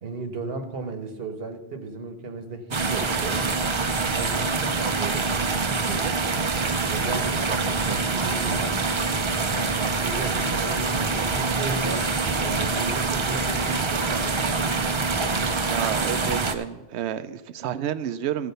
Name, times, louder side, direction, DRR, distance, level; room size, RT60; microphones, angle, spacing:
voice 1, 0.0-3.4 4.1-6.2 6.9-8.8 9.5-12.1 12.4-14.6, right 3 dB, 65° right, 7 dB, 1.2 m, -35 dB
sound 1, 2.7-16.5, right 4 dB, 35° right, 0.5 m, -25 dB
voice 2, 15.7-18.5, right 10 dB, 80° right, 13 dB, 0.9 m, -30 dB
15.0 x 5.0 x 6.7 m, 1.1 s
omnidirectional pair, 1.1 m